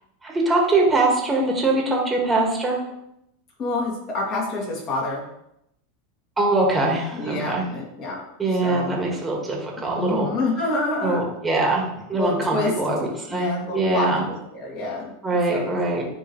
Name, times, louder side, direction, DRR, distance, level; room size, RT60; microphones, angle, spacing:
voice 1, 0.2-2.9 6.4-7.6 8.4-10.3 11.0-14.2 15.2-16.0, right 2 dB, 15° right, -1 dB, 1.6 m, -22 dB
voice 2, 3.6-5.2 7.1-8.2 8.6-9.0 9.8-11.3 12.1-12.7 13.0-15.1 15.5-15.8, left 2 dB, 40° left, -4 dB, 2.4 m, -28 dB
9.6 x 3.3 x 3.1 m, 0.80 s
supercardioid pair, 125°, 0 cm